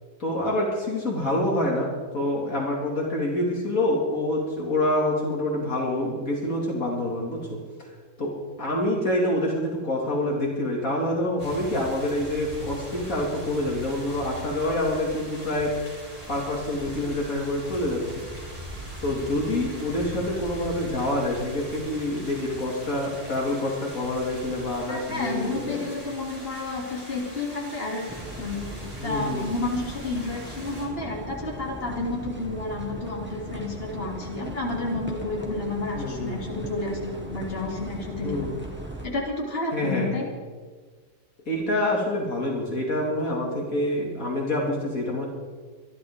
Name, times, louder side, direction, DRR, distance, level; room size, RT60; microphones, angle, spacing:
voice 1, 0.2-1.9 2.1-7.4 8.2-8.3 8.6-15.7 16.3-18.0 19.0-25.8 29.0-29.4 36.0-36.6 38.2-38.6 39.7-40.1 41.5-45.3, left 1 dB, 65° left, -2 dB, 2.9 m, -26 dB
sound 1, 11.4-30.9, right 1 dB, 25° right, 3.8 m, -41 dB
voice 2, 24.9-38.5 39.0-40.3, left 2 dB, 40° left, -3 dB, 3.1 m, -31 dB
sound 2, 28.1-39.1, right 1 dB, 5° right, 1.9 m, -38 dB
26.0 x 12.0 x 3.7 m, 1.5 s
omnidirectional pair, 1.6 m